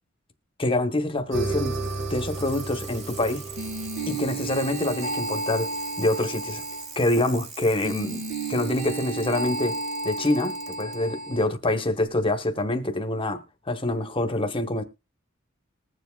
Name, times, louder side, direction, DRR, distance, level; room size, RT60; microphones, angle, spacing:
voice 1, 0.6-1.8 2.1-3.4 4.0-6.6 6.9-9.8 10.0-14.8, left 2 dB, 25° left, 1.2 m, -26 dB
Bicycle, 1.3-11.0 12.1-12.2, right 5 dB, 35° right, 1.6 m, -43 dB
sound 1, 1.3-7.0 7.8-11.5, right 2 dB, 85° right, 3.1 m, -32 dB
20.5 x 7.4 x 2.3 m
head